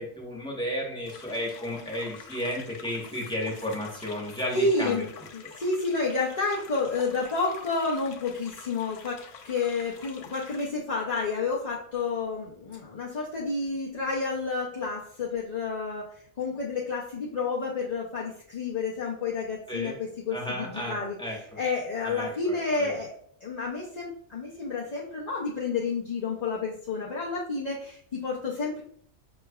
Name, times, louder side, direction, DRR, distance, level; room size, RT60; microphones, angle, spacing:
voice 1, 0.0-5.1 19.7-20.0 20.3-21.6 22.0-22.9, left 1 dB, 5° left, -3 dB, 0.9 m, -33 dB
sound 1, 1.0-10.7, left 6 dB, 75° left, 0.9 m, -47 dB
voice 2, 4.5-5.1 5.3-9.2 9.4-16.0 16.4-21.2 21.6-23.1 23.4-28.8, left 3 dB, 45° left, -6 dB, 0.5 m, -30 dB
5.7 x 3.1 x 2.3 m, 0.63 s
omnidirectional pair, 1.4 m